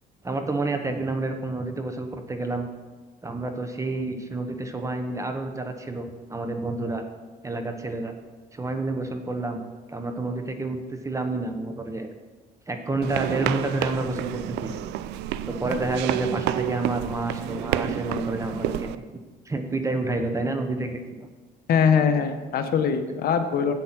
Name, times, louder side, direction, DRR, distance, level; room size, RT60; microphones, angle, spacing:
voice 1, 0.2-2.7 3.2-7.0 7.4-8.1 8.5-9.6 9.9-12.1 12.7-14.7 15.5-18.9 19.4-21.3, right 2 dB, 20° right, 6 dB, 1.1 m, -29 dB
sound 1, 13.0-19.0, right 12 dB, 90° right, 0.5 m, -29 dB
voice 2, 21.7-23.7, left 6 dB, 60° left, 8 dB, 1.0 m, -22 dB
8.2 x 8.1 x 6.0 m, 1.3 s
cardioid pair, 110°, 17 cm